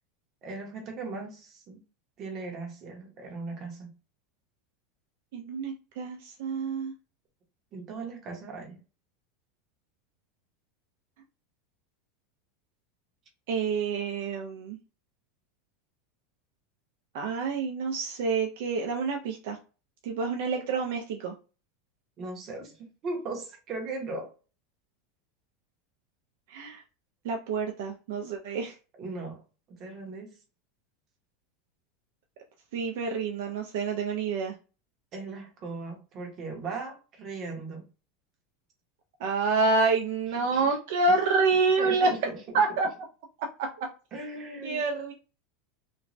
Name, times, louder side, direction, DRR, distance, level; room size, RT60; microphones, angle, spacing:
voice 1, 0.4-1.8 2.2-3.9 7.7-8.8 22.2-24.3 28.9-29.4 29.8-30.4 35.1-37.8 40.4-40.8 41.8-42.4 44.1-45.1, right 3 dB, 25° right, 1 dB, 0.8 m, -38 dB
voice 2, 5.3-6.9 13.5-14.8 17.1-19.6 20.0-21.3 26.5-26.8 27.2-28.8 32.7-34.6 39.2-42.1 42.5-42.9 43.8-43.9 44.6-45.1, right 4 dB, 55° right, 2 dB, 0.4 m, -27 dB
3.0 x 2.2 x 2.5 m, 0.33 s
supercardioid pair, 175°, 0 cm